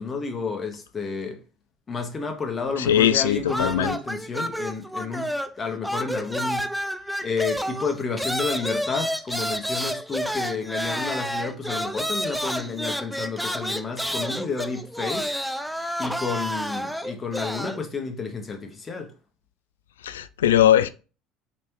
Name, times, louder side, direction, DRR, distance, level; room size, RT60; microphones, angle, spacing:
voice 1, 0.0-1.4 1.9-6.7 7.2-15.3 15.6-15.7 16.0-19.1, left 5 dB, 30° left, 1.1 m, -31 dB
voice 2, 2.8-3.9 20.0-20.9, left 11 dB, 75° left, 0.3 m, -20 dB
sound 1, 3.5-5.6 5.8-17.8, equal, ahead, 0.4 m, -30 dB
4.1 x 3.4 x 2.9 m
figure-of-eight pair, 65°, 0 cm